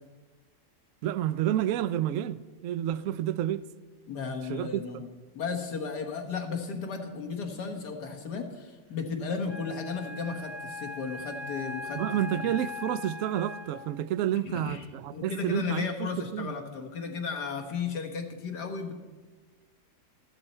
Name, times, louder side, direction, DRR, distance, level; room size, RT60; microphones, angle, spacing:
voice 1, 1.0-3.6 4.5-5.0 11.9-16.5, right 11 dB, 70° right, 0.8 m, -30 dB
voice 2, 4.1-5.1 5.3-12.0 12.3-12.4 14.4-14.8 15.1-18.9, left 5 dB, 75° left, 2.0 m, -34 dB
Wind instrument woodwind instrument, 9.5-14.0, left 3 dB, 20° right, 0.9 m, -40 dB
15.0 x 11.5 x 4.3 m
omnidirectional pair, 1.8 m